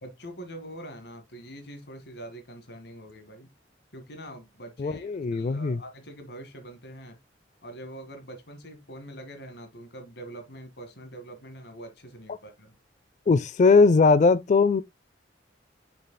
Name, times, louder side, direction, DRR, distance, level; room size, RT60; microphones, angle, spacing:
voice 1, 0.0-3.5 3.9-7.2 7.6-12.8, right 1 dB, 65° left, 1.9 m, -44 dB
voice 2, 4.8-5.8 13.3-14.8, left 4 dB, 40° left, 0.4 m, -20 dB
6.8 x 6.7 x 2.2 m
head